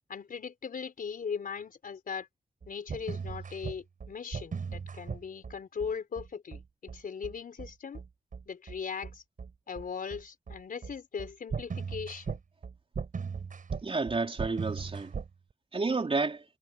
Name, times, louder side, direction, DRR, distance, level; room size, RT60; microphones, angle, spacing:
voice 1, 0.1-2.3 2.7-8.0 8.5-9.2 9.7-12.4, left 6 dB, 80° left, 4.5 m, -39 dB
sound 1, 2.6-15.3, right 5 dB, 70° right, 6.6 m, -38 dB
voice 2, 13.8-15.1 15.7-16.4, right 3 dB, 40° right, 3.6 m, -30 dB
wide cardioid pair, 110°, 14 cm